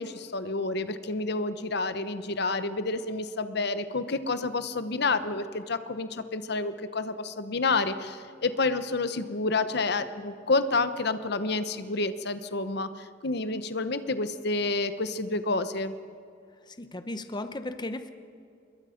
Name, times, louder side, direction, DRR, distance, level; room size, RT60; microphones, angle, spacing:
voice 1, 0.0-15.9, left 3 dB, 65° left, 11 dB, 1.0 m, -29 dB
voice 2, 16.7-18.1, left 1 dB, 25° left, 9 dB, 0.8 m, -36 dB
27.0 x 22.0 x 5.2 m, 2.3 s
head